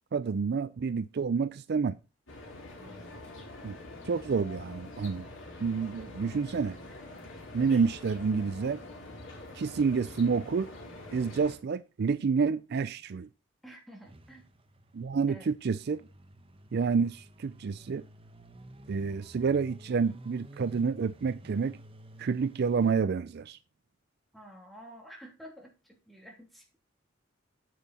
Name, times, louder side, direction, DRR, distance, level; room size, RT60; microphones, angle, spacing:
voice 1, 0.1-2.0 3.6-3.8 4.1-5.3 5.6-6.8 7.5-8.8 9.5-10.7 11.1-13.3 14.9-16.0 16.7-18.0 18.9-21.8 22.2-23.6, right 5 dB, 55° right, 0.4 m, -29 dB
sound 1, 2.3-11.6, left 2 dB, 75° left, 4.3 m, -45 dB
voice 2, 2.8-3.3 13.6-14.5 15.3-15.5 24.3-26.8, equal, ahead, 3.0 m, -50 dB
sound 2, 14.0-22.9, right 1 dB, 30° right, 1.0 m, -52 dB
9.2 x 8.2 x 4.2 m
head